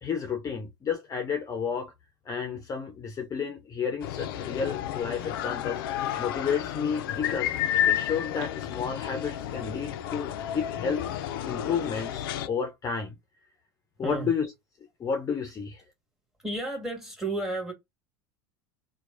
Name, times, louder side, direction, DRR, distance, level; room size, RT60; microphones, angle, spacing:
voice 1, 0.0-1.9 2.2-5.8 6.2-7.5 7.9-11.1 11.5-13.2 14.0-14.5 15.0-15.8, left 6 dB, 30° left, 0.6 m, -31 dB
sound 1, 4.0-12.5, left 11 dB, 70° left, 0.4 m, -31 dB
voice 2, 16.4-17.7, right 2 dB, 5° right, 1.6 m, -32 dB
3.0 x 2.2 x 2.5 m
hypercardioid pair, 95°, 12 cm